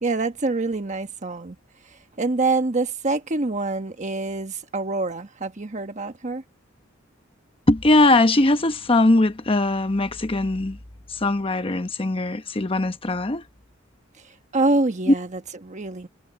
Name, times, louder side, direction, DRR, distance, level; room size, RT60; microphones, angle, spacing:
voice 1, 0.0-1.6 2.2-6.4 14.5-16.1, right 3 dB, 40° right, 1.2 m, -25 dB
voice 2, 7.7-10.8 11.1-13.4 15.1-15.2, left 2 dB, 30° left, 1.0 m, -20 dB
head